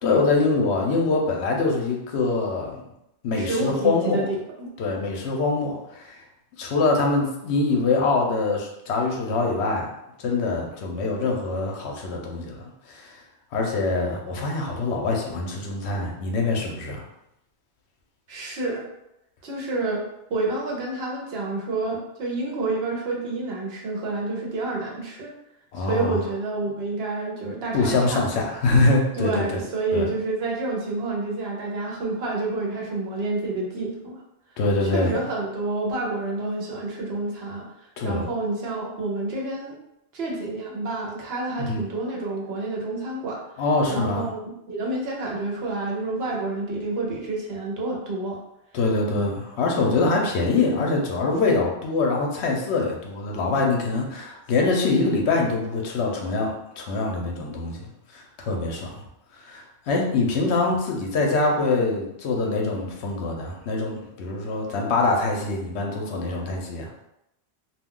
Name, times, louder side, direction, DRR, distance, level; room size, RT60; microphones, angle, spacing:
voice 1, 0.0-2.8 3.2-4.2 4.8-6.2 6.6-9.9 10.2-12.6 12.9-13.2 13.5-17.0 25.7-26.2 27.7-29.6 29.9-30.1 34.6-35.1 38.0-38.2 41.6-41.8 43.6-44.3 48.7-59.0 59.4-66.9, left 3 dB, 75° left, 0 dB, 0.9 m, -24 dB
voice 2, 3.3-4.7 18.3-18.8 19.4-20.0 20.3-25.3 25.8-28.3 29.2-34.2 34.9-39.8 40.1-43.4 43.9-48.4 49.1-49.4 50.0-50.1, right 2 dB, 65° right, -2 dB, 0.9 m, -29 dB
2.3 x 2.2 x 3.6 m, 0.85 s
omnidirectional pair, 1.1 m